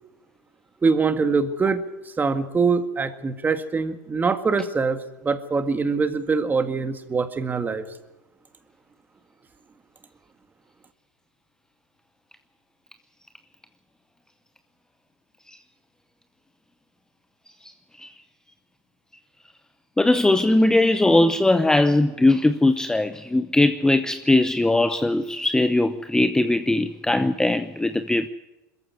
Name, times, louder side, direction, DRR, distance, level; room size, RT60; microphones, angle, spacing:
voice 1, 0.8-1.8 2.2-7.9, right 4 dB, 20° right, 1.8 m, -23 dB
voice 2, 20.0-28.3, left 2 dB, 5° left, 0.8 m, -20 dB
21.5 x 14.5 x 9.7 m
supercardioid pair, 115°, 10 cm